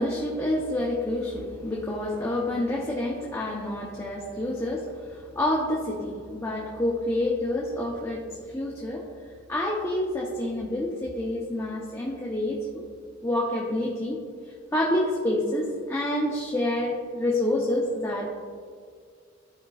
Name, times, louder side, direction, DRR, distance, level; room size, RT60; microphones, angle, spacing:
voice 1, 0.0-8.2 8.5-9.0 9.5-12.8 13.2-14.2 14.7-18.3, left 1 dB, 10° left, -4 dB, 0.8 m, -28 dB
13.5 x 5.2 x 2.4 m, 2.1 s
head